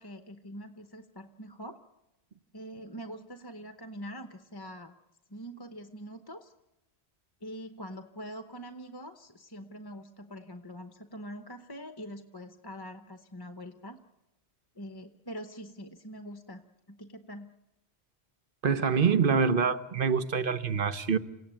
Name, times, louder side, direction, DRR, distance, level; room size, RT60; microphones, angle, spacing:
voice 1, 0.0-1.8 2.5-4.9 5.3-6.5 7.4-14.0 14.7-16.6 16.9-17.5, equal, 25° left, 0.9 m, -44 dB
voice 2, 18.6-21.2, right 6 dB, 55° right, 1.2 m, -25 dB
27.5 x 16.5 x 9.0 m
omnidirectional pair, 1.1 m